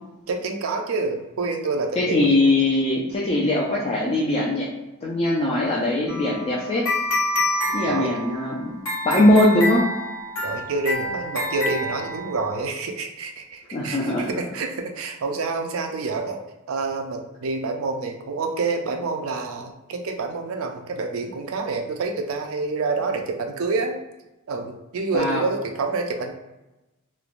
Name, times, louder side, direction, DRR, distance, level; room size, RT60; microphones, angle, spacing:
voice 1, 0.3-2.5 7.7-8.1 10.4-16.4 16.7-24.0 24.5-26.3, right 3 dB, 65° right, 3 dB, 0.4 m, -28 dB
voice 2, 2.0-4.7 5.0-6.8 7.7-8.7 9.0-9.8 13.7-14.3 25.1-25.4, left 1 dB, 30° left, -5 dB, 0.4 m, -21 dB
sound 1, 6.1-12.6, left 1 dB, 65° left, 1.0 m, -27 dB
3.1 x 2.1 x 2.4 m, 1.0 s
head